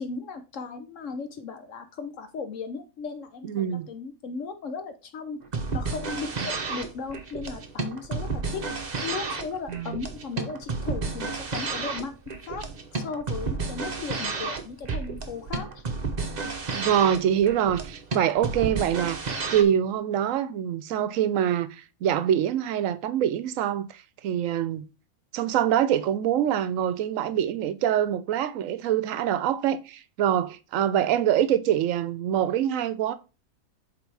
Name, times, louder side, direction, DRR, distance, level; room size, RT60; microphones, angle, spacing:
voice 1, 0.0-5.4 5.7-8.7 9.0-12.1 12.4-12.7 12.9-15.8, left 5 dB, 65° left, 1.1 m, -36 dB
voice 2, 3.4-3.9 9.7-10.0 16.7-19.2 19.5-24.8 25.3-33.1, right 10 dB, 70° right, 1.0 m, -25 dB
sound 1, 5.4-19.6, right 4 dB, 35° right, 0.8 m, -32 dB
8.0 x 3.4 x 4.7 m
omnidirectional pair, 1.5 m